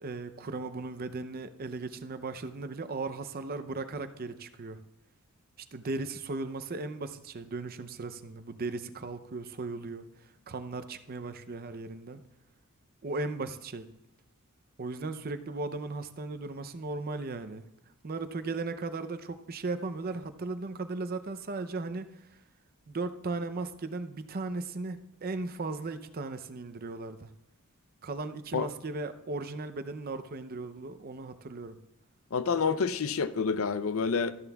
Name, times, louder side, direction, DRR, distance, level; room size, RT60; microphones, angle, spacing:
voice 1, 0.0-4.8 5.6-10.1 10.5-12.2 13.0-13.9 14.8-17.7 18.0-22.3 22.9-27.3 28.0-31.8, right 3 dB, 45° right, 10 dB, 0.6 m, -37 dB
voice 2, 32.3-34.3, left 5 dB, 65° left, 12 dB, 0.5 m, -28 dB
14.0 x 10.5 x 2.3 m, 0.88 s
head